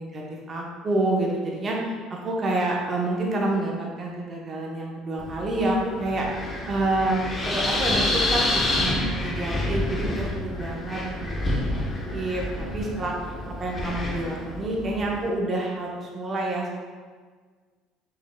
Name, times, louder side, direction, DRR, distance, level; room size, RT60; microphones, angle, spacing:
voice 1, 0.0-11.8 12.1-13.3 13.6-16.8, right 2 dB, 35° right, -2 dB, 0.9 m, -28 dB
Wind, 5.2-15.3, left 1 dB, 30° left, 0.9 m, -28 dB
6.1 x 3.9 x 2.2 m, 1.5 s
hypercardioid pair, 65°, 0 cm